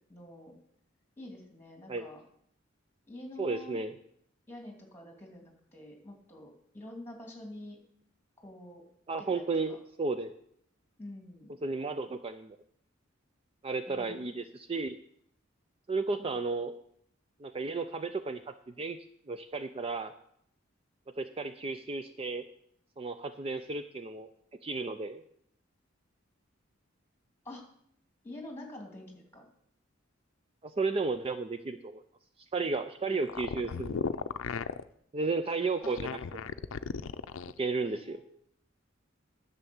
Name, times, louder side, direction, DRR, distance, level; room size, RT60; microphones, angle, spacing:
voice 1, 0.1-0.5 1.2-2.2 3.0-3.8 4.5-7.8 8.4-8.8 9.2-9.8 11.0-11.5 13.9-14.3 16.2-16.3 27.4-27.6 28.2-29.4 37.8-38.4, left 1 dB, 10° left, 2 dB, 2.6 m, -47 dB
voice 2, 3.4-3.9 9.1-10.3 11.6-12.6 13.6-15.0 15.9-16.7 17.4-19.0 19.3-20.1 21.2-22.4 23.0-24.3 24.6-25.2 30.6-32.0 32.5-34.1 35.1-36.4 37.6-38.2, right 3 dB, 30° right, 9 dB, 0.4 m, -33 dB
sound 1, 33.2-34.8 35.8-37.6, left 5 dB, 90° left, 0.5 m, -35 dB
10.5 x 6.9 x 7.1 m, 0.69 s
head